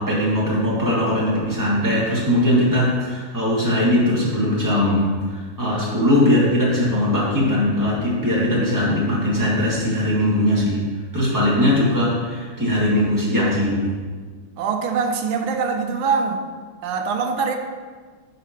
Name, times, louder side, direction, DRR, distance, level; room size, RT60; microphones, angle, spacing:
voice 1, 0.0-10.9 11.1-14.0, left 1 dB, 10° right, -7 dB, 2.0 m, -20 dB
voice 2, 14.6-16.5 16.8-17.6, right 5 dB, 75° right, 5 dB, 1.5 m, -23 dB
11.5 x 4.8 x 3.1 m, 1.5 s
omnidirectional pair, 2.3 m